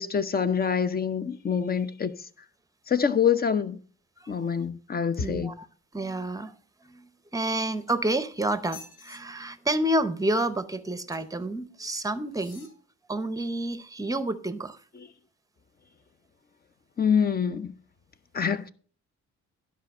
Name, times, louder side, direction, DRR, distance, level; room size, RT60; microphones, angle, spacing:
voice 1, 0.0-2.1 2.9-3.8 4.3-5.5 15.0-15.1 17.0-17.7 18.3-18.7, left 7 dB, 30° left, 0.7 m, -25 dB
voice 2, 5.2-5.7 5.9-6.5 6.8-12.7 13.1-14.8, right 1 dB, 10° right, 0.7 m, -29 dB
sound 1, 7.5-8.2 8.6-9.2 11.1-11.5 12.3-12.8 13.4-13.5, left 5 dB, 80° left, 3.0 m, -49 dB
11.0 x 5.3 x 5.4 m
cardioid pair, 90°, 30 cm